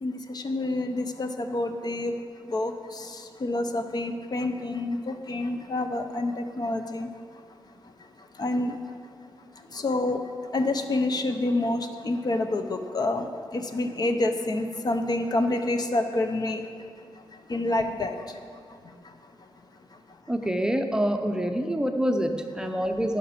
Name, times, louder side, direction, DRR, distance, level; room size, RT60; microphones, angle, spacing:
voice 1, 0.0-2.2 2.5-3.1 3.4-7.1 8.4-8.7 9.7-10.2 10.5-13.3 13.5-16.6 17.5-18.1, left 2 dB, 45° left, 6 dB, 0.7 m, -27 dB
voice 2, 20.3-23.2, equal, 10° right, 5 dB, 0.6 m, -26 dB
15.0 x 5.9 x 5.9 m, 2.1 s
wide cardioid pair, 145°, 9 cm